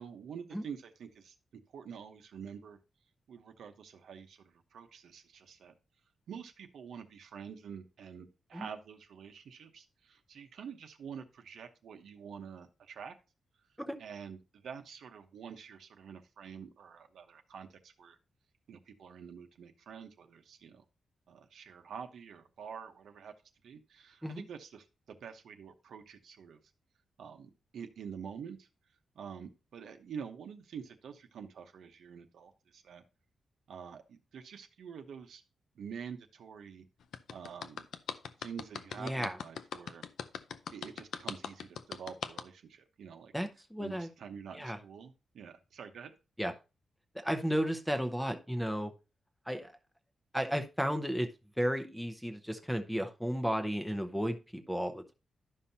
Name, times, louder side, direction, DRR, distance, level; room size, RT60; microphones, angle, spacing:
voice 1, 0.0-1.3 1.7-2.8 3.3-5.7 6.3-13.1 14.0-18.2 18.7-20.8 21.3-23.3 23.6-26.6 27.2-28.7 29.1-33.0 33.7-35.4 35.7-36.8 37.3-37.9 38.4-40.0 40.7-43.3 43.8-46.1, right 7 dB, 80° right, 6 dB, 0.9 m, -47 dB
sound 1, 37.1-42.4, left 7 dB, 80° left, 0.5 m, -40 dB
voice 2, 39.0-39.4 43.3-44.1 44.5-44.8 46.4-46.5 47.1-48.9 49.5-49.7 50.3-51.3 51.6-55.1, equal, ahead, 8 dB, 0.7 m, -33 dB
11.5 x 5.6 x 2.7 m, 0.29 s
wide cardioid pair, 170°, 0 cm